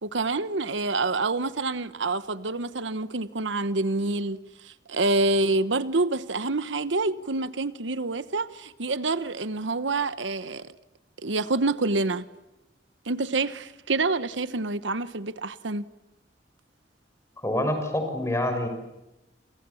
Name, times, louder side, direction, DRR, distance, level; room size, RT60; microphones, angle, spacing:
voice 1, 0.0-10.7 11.2-12.3 13.1-15.8, right 3 dB, 80° right, 1.2 m, -27 dB
voice 2, 17.4-18.7, left 1 dB, 15° left, 6.8 m, -26 dB
28.5 x 28.5 x 7.2 m
head